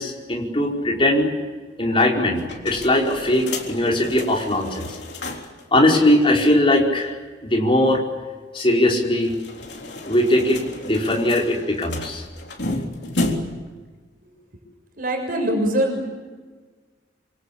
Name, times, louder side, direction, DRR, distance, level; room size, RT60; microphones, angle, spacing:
voice 1, 0.0-1.3 1.8-4.9 5.7-7.1 7.4-8.0 8.5-9.3 10.1-12.2, left 1 dB, 30° left, -1 dB, 5.1 m, -20 dB
sound 1, 2.4-5.6 6.0-6.1 6.3-6.4 9.2-13.7, left 2 dB, 70° left, 3.8 m, -32 dB
voice 2, 15.0-16.1, right 1 dB, 50° right, 2 dB, 6.6 m, -22 dB
27.0 x 25.0 x 8.6 m, 1.4 s
head